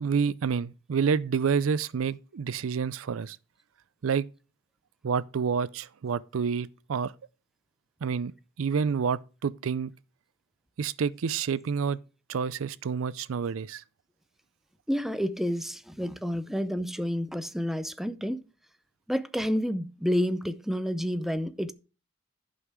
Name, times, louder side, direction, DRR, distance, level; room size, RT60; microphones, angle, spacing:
voice 1, 0.0-3.4 4.0-4.3 5.0-7.1 8.0-8.3 8.6-9.9 10.8-12.0 12.3-13.8, right 6 dB, 80° right, 0.4 m, -28 dB
voice 2, 14.9-18.4 19.1-21.7, equal, ahead, 0.5 m, -29 dB
11.5 x 5.5 x 4.7 m
head